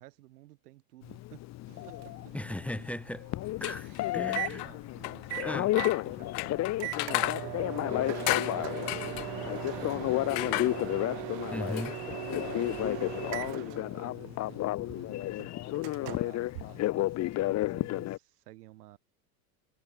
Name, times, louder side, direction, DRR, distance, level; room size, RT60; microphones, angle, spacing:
voice 1, 0.0-1.5 1.9-2.4 4.1-10.3 11.3-11.8 12.5-15.4 16.0-19.0, right 17 dB, 80° right, 4.8 m, -54 dB
Telephone, 1.0-18.2, left 16 dB, 35° left, 0.8 m, -32 dB
Microwave oven, 1.7-17.4, right 40 dB or more, 60° right, 2.1 m, -41 dB
voice 2, 2.3-3.3 3.6-4.6 5.4-5.7 11.5-11.9, left 1 dB, 5° left, 0.9 m, -37 dB
sound 1, 3.4-13.5, left 31 dB, 60° left, 2.4 m, -37 dB
supercardioid pair, 105°, 45 cm